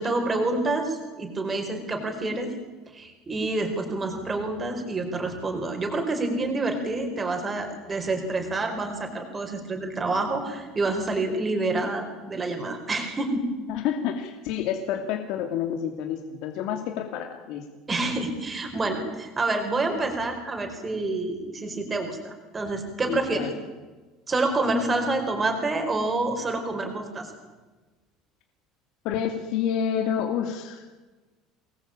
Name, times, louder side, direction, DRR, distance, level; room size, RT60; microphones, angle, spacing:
voice 1, 0.0-2.5 2.9-13.4 17.9-23.5 24.3-27.3, right 2 dB, 15° right, 4 dB, 4.7 m, -28 dB
voice 2, 13.7-17.6 23.1-23.6 29.0-30.9, left 8 dB, 60° left, 5 dB, 2.5 m, -29 dB
24.5 x 20.0 x 8.8 m, 1.2 s
cardioid pair, 165°, 0 cm